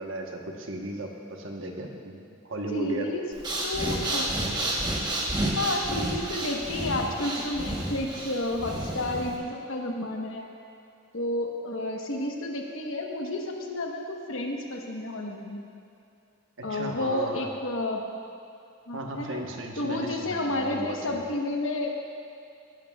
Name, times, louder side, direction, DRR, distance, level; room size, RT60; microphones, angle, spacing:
voice 1, 0.0-3.1 16.7-17.5 18.9-21.2, right 1 dB, 70° right, 1 dB, 1.1 m, -36 dB
voice 2, 2.7-3.3 3.6-4.3 5.5-10.5 11.1-15.7 16.6-18.0 18.9-19.4 19.8-21.9, left 1 dB, 75° left, 1 dB, 1.1 m, -31 dB
Breathing, 3.3-9.4, right 1 dB, 20° right, 1.1 m, -30 dB
16.5 x 11.0 x 2.4 m, 2.5 s
head